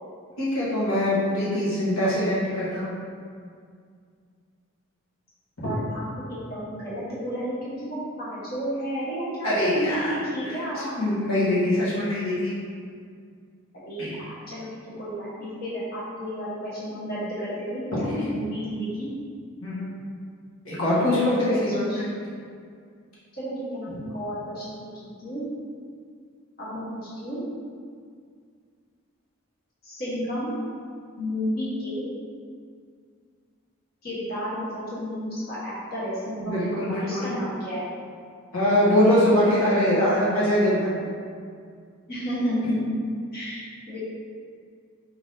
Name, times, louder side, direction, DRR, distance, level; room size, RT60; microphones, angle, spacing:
voice 1, 0.4-3.0 9.4-10.1 11.0-12.5 14.0-14.1 18.1-18.2 19.6-19.9 20.6-22.1 36.4-37.2 38.5-41.0, left 1 dB, 80° left, -9 dB, 1.3 m, -23 dB
voice 2, 5.6-6.0 6.3-11.0 13.8-19.1 21.1-21.2 21.4-22.0 23.4-24.7 25.2-25.4 26.6-27.4 29.8-30.5 31.2-32.1 34.0-36.7 37.0-37.9 42.1-43.0 43.3-44.0, equal, 45° left, -10 dB, 1.3 m, -32 dB
4.6 x 3.5 x 2.8 m, 2.2 s
head